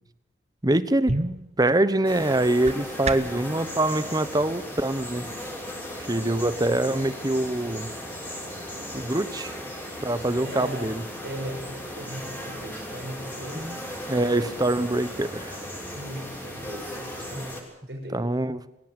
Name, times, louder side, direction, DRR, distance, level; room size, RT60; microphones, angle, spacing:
voice 1, 0.6-1.2 1.6-5.2 6.1-7.9 8.9-9.5 10.0-11.0 13.5-13.8 14.1-15.5 17.4-17.5 18.1-18.6, right 1 dB, 20° right, 14 dB, 1.2 m, -24 dB
sound 1, 0.6-3.5, right 2 dB, 40° right, 1.5 m, -32 dB
sound 2, 2.0-17.6, equal, 10° left, 6.8 m, -37 dB
voice 2, 10.4-10.9 11.2-13.9 15.9-17.5 17.9-18.2, equal, 70° right, 2 dB, 6.3 m, -38 dB
24.5 x 17.0 x 9.0 m, 0.81 s
head